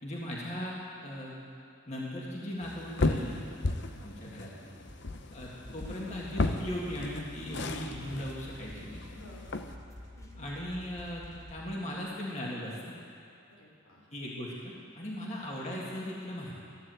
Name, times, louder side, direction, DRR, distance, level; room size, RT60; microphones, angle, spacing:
voice 1, 0.0-1.4 1.9-3.4 4.0-4.7 5.3-9.0 10.4-12.9 14.1-16.5, equal, 35° left, -4 dB, 1.9 m, -38 dB
sound 1, 2.6-9.7, left 2 dB, 55° left, 0.7 m, -35 dB
sound 2, 4.8-11.6, equal, 60° right, 2.4 m, -54 dB
sound 3, 5.6-11.8, left 2 dB, 15° left, 0.8 m, -49 dB
voice 2, 9.1-9.6 10.1-10.4 13.5-14.1 15.0-15.4, left 1 dB, 90° left, -2 dB, 3.5 m, -53 dB
14.5 x 9.9 x 7.7 m, 2.6 s
head